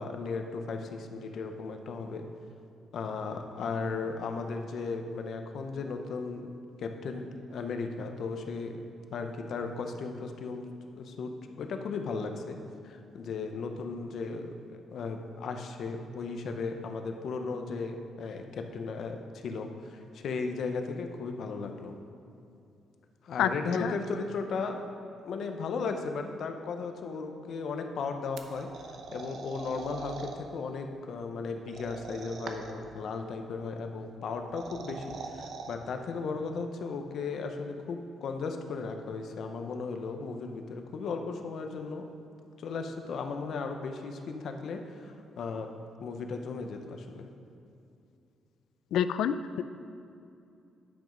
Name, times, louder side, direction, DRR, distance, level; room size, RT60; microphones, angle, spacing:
voice 1, 0.0-2.2 2.9-6.5 6.8-8.7 9.1-10.7 11.0-12.6 12.8-21.9 23.2-24.8 25.2-28.7 29.1-42.1 42.6-45.7 46.0-47.3, left 4 dB, 60° left, 5 dB, 0.8 m, -36 dB
sound 1, 28.4-30.4 31.7-32.8 34.3-35.8, right 4 dB, 65° right, 0.8 m, -42 dB
voice 2, 48.9-49.6, left 9 dB, 80° left, 11 dB, 0.4 m, -27 dB
10.5 x 6.2 x 5.1 m, 2.6 s
cardioid pair, 150°, 0 cm